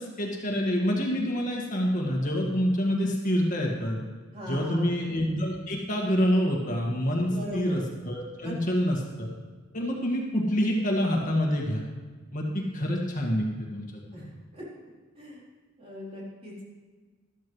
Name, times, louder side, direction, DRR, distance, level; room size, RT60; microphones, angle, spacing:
voice 1, 0.0-4.0 4.5-9.3 9.7-11.8 12.3-13.5 13.7-13.9, equal, 40° left, -1 dB, 1.8 m, -27 dB
voice 2, 4.3-4.9 7.3-7.8 8.4-8.5 14.1-14.7 15.2-15.4 15.8-16.6, equal, 30° right, -5 dB, 3.6 m, -38 dB
13.0 x 13.0 x 3.2 m, 1.4 s
head